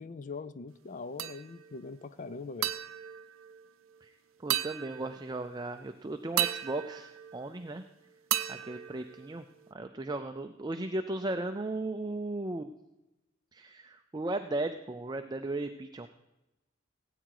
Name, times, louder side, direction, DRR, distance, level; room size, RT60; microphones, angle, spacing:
voice 1, 0.0-2.7, left 4 dB, 40° left, 14 dB, 0.5 m, -42 dB
sound 1, 1.2-1.8 2.6-4.0 4.5-5.5 6.4-7.8 8.3-9.7, right 12 dB, 80° right, 0.6 m, -35 dB
voice 2, 4.4-7.8 8.5-9.5 9.7-12.7 13.5-16.1, right 2 dB, 20° right, 7 dB, 0.5 m, -36 dB
16.5 x 9.1 x 4.8 m, 0.99 s
head